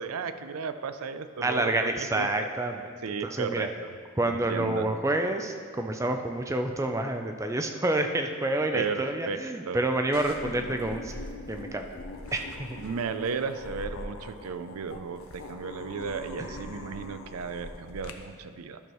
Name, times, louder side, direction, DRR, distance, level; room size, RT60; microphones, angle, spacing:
voice 1, 0.0-2.5 3.0-3.7 4.2-4.9 8.7-9.4 9.7-9.8 12.8-18.8, right 5 dB, 90° right, 10 dB, 0.4 m, -34 dB
voice 2, 1.4-2.8 3.2-3.7 4.2-11.2 11.5-11.9 12.3-12.7 16.4-16.5, right 2 dB, 15° right, 5 dB, 0.3 m, -28 dB
sound 1, 10.1-18.1, left 2 dB, 75° left, 0.6 m, -42 dB
12.0 x 6.3 x 3.0 m, 2.1 s
head